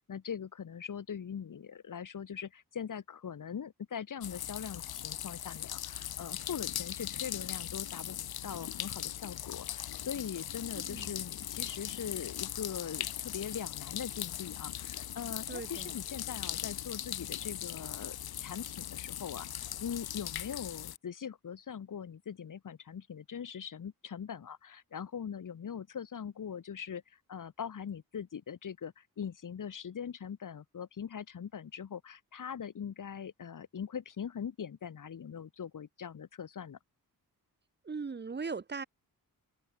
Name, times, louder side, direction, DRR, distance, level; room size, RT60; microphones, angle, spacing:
voice 1, 0.0-8.2 8.4-36.8, left 7 dB, 60° left, 2.0 m, -41 dB
sound 1, 4.2-21.0, left 11 dB, 80° left, 0.9 m, -39 dB
voice 2, 15.5-15.9 37.8-38.8, right 5 dB, 30° right, 1.1 m, -39 dB
open air
wide cardioid pair, 125°, 36 cm